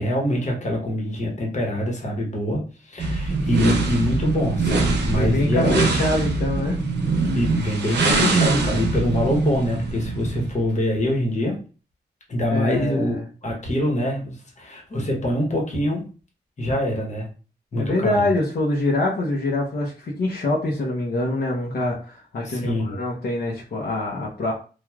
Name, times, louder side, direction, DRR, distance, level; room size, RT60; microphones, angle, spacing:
voice 1, 0.0-6.0 7.3-11.6 12.3-16.1 16.6-17.3 17.7-18.3 22.4-23.0, left 1 dB, 45° left, 0 dB, 1.0 m, -24 dB
sound 1, 3.0-10.6, right 3 dB, 85° right, 0.7 m, -23 dB
voice 2, 5.1-6.8 12.5-13.2 17.7-24.5, left 2 dB, 65° left, -3 dB, 0.7 m, -25 dB
3.2 x 2.3 x 2.3 m, 0.36 s
wide cardioid pair, 95°, 17 cm